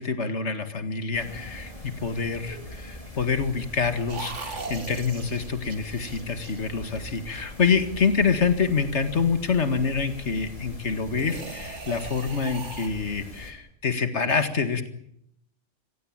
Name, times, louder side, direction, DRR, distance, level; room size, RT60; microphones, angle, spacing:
voice 1, 0.0-14.9, left 5 dB, 60° left, 9 dB, 2.3 m, -26 dB
sound 1, 1.1-13.5, left 1 dB, 25° left, 4.4 m, -42 dB
sound 2, 4.1-7.3 11.1-12.9, right 4 dB, 65° right, 2.4 m, -39 dB
26.0 x 16.5 x 8.9 m, 0.72 s
omnidirectional pair, 1.3 m